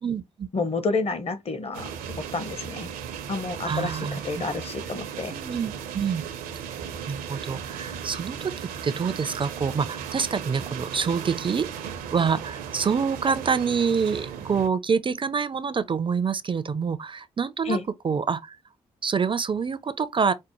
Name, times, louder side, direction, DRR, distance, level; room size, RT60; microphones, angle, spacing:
voice 1, 0.0-0.5 3.6-4.2 5.3-6.2 7.1-8.5 8.8-11.7 12.1-17.8 18.0-18.6 19.0-20.3, right 6 dB, 35° right, 0.4 m, -26 dB
voice 2, 0.5-2.9 3.3-5.3 17.6-17.8, left 3 dB, 40° left, 0.9 m, -30 dB
sound 1, 1.7-14.7, right 8 dB, 80° right, 0.6 m, -36 dB
5.2 x 2.1 x 3.0 m
hypercardioid pair, 40°, 15 cm